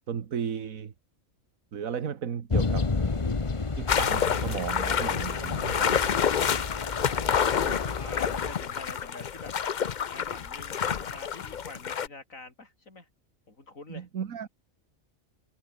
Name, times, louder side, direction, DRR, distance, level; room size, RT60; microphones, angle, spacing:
voice 1, 0.1-0.9 1.7-2.9 3.8-6.5 7.7-7.8 13.9-14.5, right 7 dB, 80° right, 1.7 m, -35 dB
sound 1, 2.5-8.5, left 3 dB, 25° left, 1.1 m, -31 dB
sound 2, 3.9-12.1, left 8 dB, 45° left, 0.7 m, -28 dB
voice 2, 7.0-9.5 10.1-13.1 13.5-14.1, left 3 dB, 75° left, 4.6 m, -46 dB
omnidirectional pair, 1.4 m